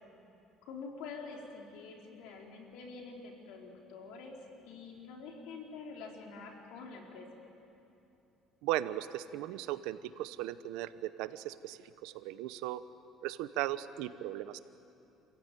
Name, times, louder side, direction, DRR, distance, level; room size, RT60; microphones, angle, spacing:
voice 1, 0.6-4.4 4.6-7.3, left 4 dB, 85° left, 0 dB, 4.0 m, -46 dB
voice 2, 8.6-12.8 13.2-14.6, right 14 dB, 90° right, 13 dB, 0.8 m, -37 dB
27.5 x 16.0 x 9.2 m, 2.9 s
cardioid pair, 125°, 0 cm